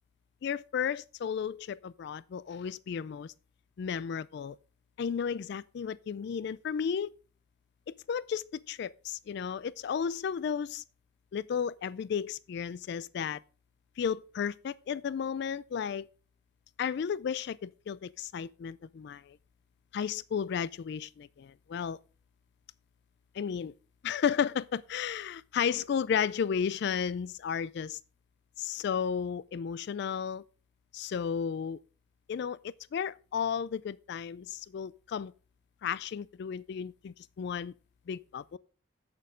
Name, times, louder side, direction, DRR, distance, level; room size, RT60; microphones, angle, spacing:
voice 1, 0.4-3.3 3.8-4.6 5.0-7.1 8.1-10.8 11.3-13.4 14.0-16.1 16.8-19.4 19.9-22.0 23.3-23.7 24.0-28.0 28.6-30.4 30.9-31.8 32.3-35.3 35.8-37.7 38.1-38.6, left 7 dB, 60° left, 0.3 m, -33 dB
8.5 x 6.7 x 5.0 m
head